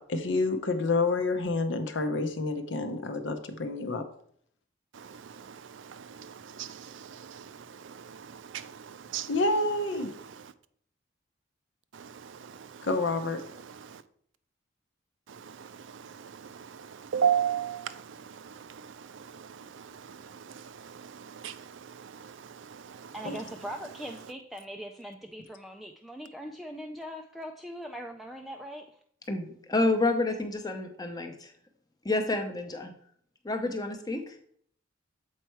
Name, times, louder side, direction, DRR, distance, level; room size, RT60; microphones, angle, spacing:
voice 1, 0.1-4.0 9.3-10.1 12.8-13.4 23.2-23.4, left 2 dB, 65° left, 0.8 m, -28 dB
voice 2, 4.9-10.0 11.9-14.0 15.3-24.3, right 8 dB, 70° right, 0.4 m, -37 dB
voice 3, 23.1-29.0, equal, ahead, 0.3 m, -41 dB
voice 4, 29.3-31.5 32.0-32.9 33.4-34.2, left 2 dB, 20° left, 0.7 m, -29 dB
7.6 x 4.5 x 4.5 m
head